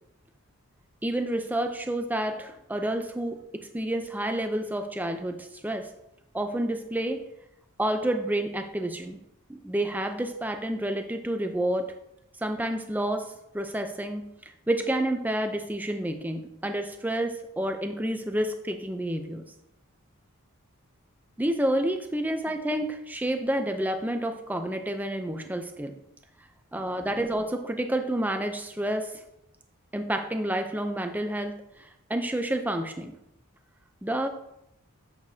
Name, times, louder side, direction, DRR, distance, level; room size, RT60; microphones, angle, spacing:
voice 1, 1.0-5.9 6.3-7.2 7.8-9.2 9.5-11.9 12.4-14.3 14.7-19.5 21.4-26.0 26.7-29.2 29.9-33.1 34.0-34.3, right 1 dB, 10° right, 6 dB, 0.5 m, -29 dB
8.3 x 6.7 x 2.7 m, 0.82 s
head